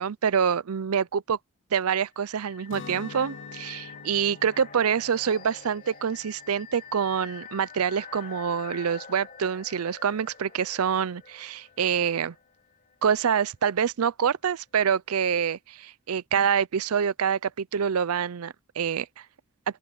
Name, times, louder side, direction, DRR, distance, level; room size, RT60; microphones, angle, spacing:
voice 1, 0.0-1.4 1.7-12.3 13.0-19.2, right 7 dB, 90° right, 0.5 m, -26 dB
sound 1, 2.2-12.9, left 6 dB, 40° left, 2.8 m, -46 dB
Guitar, 2.7-8.5, left 4 dB, 55° left, 0.7 m, -47 dB
open air
head